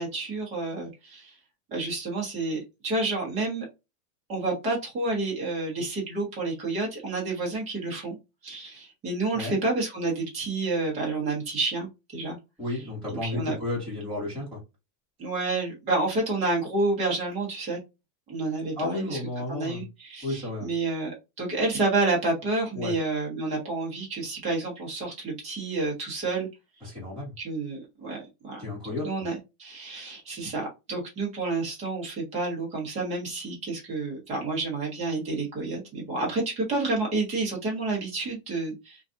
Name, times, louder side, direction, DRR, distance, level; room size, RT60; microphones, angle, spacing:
voice 1, 0.0-1.3 1.7-3.7 4.3-8.2 8.4-12.4 12.7-12.8 13.2-13.6 15.2-17.8 18.3-19.2 19.5-26.5 27.4-39.0, right 3 dB, 15° right, 0.6 m, -29 dB
voice 2, 12.6-14.6 18.8-19.8 20.2-20.7 22.8-22.9 26.8-27.3 28.6-29.1, left 2 dB, ahead, 1.0 m, -32 dB
2.6 x 2.3 x 2.4 m
supercardioid pair, 175°, 47 cm